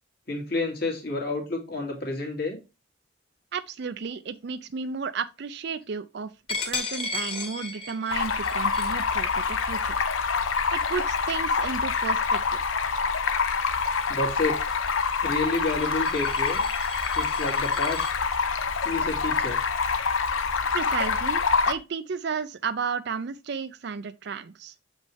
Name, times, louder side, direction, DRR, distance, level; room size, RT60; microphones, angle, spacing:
voice 1, 0.3-2.6 14.1-14.6 15.2-16.6 17.1-18.0 18.8-19.6, left 2 dB, 50° left, 2.3 m, -29 dB
voice 2, 3.5-6.3 6.7-10.0 10.7-12.6 20.7-24.7, right 5 dB, 55° right, 0.4 m, -33 dB
Coin (dropping), 6.5-11.9 12.4-12.6 13.0-18.1, left 3 dB, 25° left, 1.6 m, -37 dB
Stream, 8.1-21.7, left 5 dB, 85° left, 0.8 m, -26 dB
7.4 x 5.3 x 3.2 m
head